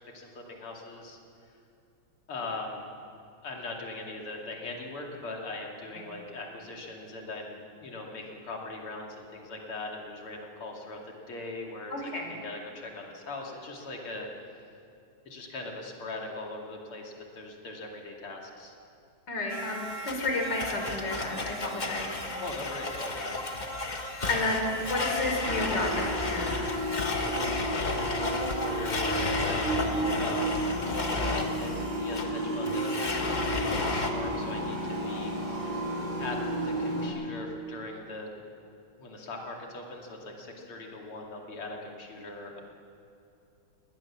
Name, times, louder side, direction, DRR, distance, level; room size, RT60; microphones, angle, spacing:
voice 1, 0.1-1.2 2.3-2.9 3.4-11.0 11.3-11.9 12.3-14.3 15.2-18.8 22.4-23.4 27.2-30.7 31.2-35.4 35.6-35.7 36.2-36.4 36.6-38.3 39.0-42.6, left 2 dB, 80° left, 0 dB, 3.5 m, -40 dB
voice 2, 11.9-12.3 19.3-22.1 24.3-26.5, left 2 dB, 55° left, 2 dB, 4.3 m, -31 dB
Domestic sounds home sounds, 19.5-34.1, left 2 dB, 25° left, 1.1 m, -33 dB
sound 1, 25.4-37.1, equal, 55° right, 6.5 m, -32 dB
20.0 x 19.0 x 7.3 m, 2.7 s
omnidirectional pair, 2.4 m